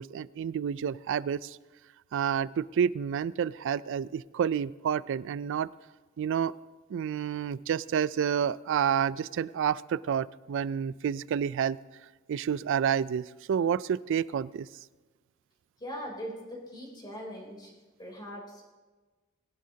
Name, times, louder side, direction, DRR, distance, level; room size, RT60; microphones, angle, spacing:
voice 1, 0.0-1.6 2.1-5.7 6.2-6.5 6.9-11.8 12.3-14.7, right 8 dB, 65° right, 19 dB, 0.3 m, -29 dB
voice 2, 15.8-17.7 18.0-18.6, equal, 20° left, -2 dB, 3.4 m, -41 dB
20.5 x 11.5 x 2.8 m, 1.3 s
head